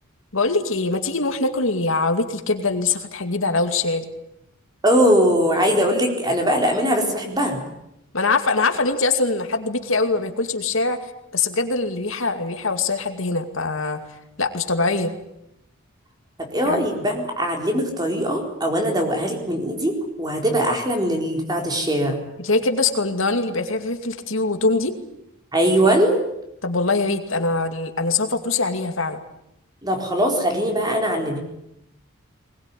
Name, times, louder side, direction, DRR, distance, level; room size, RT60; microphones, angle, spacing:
voice 1, 0.3-4.1 8.1-11.0 11.3-14.0 14.4-15.1 16.6-16.8 22.4-25.0 26.6-29.2, left 3 dB, 75° left, 7 dB, 2.4 m, -23 dB
voice 2, 4.8-7.6 16.4-22.2 25.5-26.2 29.8-31.4, equal, 20° right, 3 dB, 4.3 m, -21 dB
21.5 x 20.5 x 10.0 m, 0.83 s
head